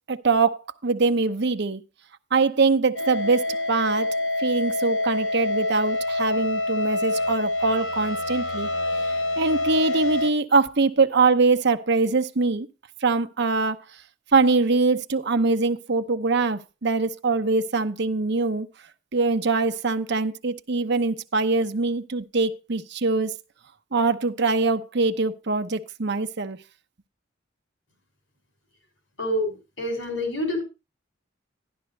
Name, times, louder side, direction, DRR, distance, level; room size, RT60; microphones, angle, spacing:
voice 1, 0.1-1.8 2.3-4.1 4.4-8.7 9.4-12.7 13.0-13.8 14.3-18.7 19.1-23.3 23.9-26.6, right 3 dB, 65° right, 0.8 m, -23 dB
sound 1, 3.0-10.3, left 2 dB, 70° left, 1.0 m, -26 dB
voice 2, 29.2-30.6, left 1 dB, 90° left, 5.9 m, -27 dB
12.0 x 11.5 x 3.3 m
head